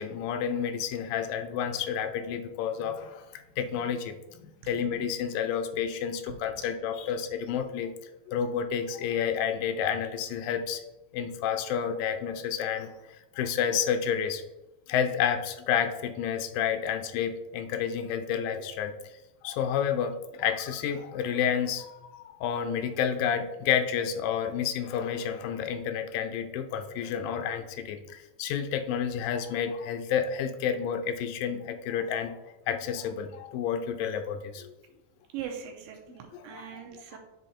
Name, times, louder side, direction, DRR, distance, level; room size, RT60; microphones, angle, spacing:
voice 1, 0.0-7.9 8.3-10.8 11.1-12.9 13.4-14.4 14.9-18.9 19.4-32.4 32.7-34.7 36.3-36.7 37.1-37.2, left 8 dB, 85° left, 7 dB, 2.4 m, -30 dB
voice 2, 35.3-37.2, right 9 dB, 85° right, 2 dB, 2.6 m, -40 dB
8.1 x 4.2 x 4.3 m, 1.0 s
omnidirectional pair, 4.0 m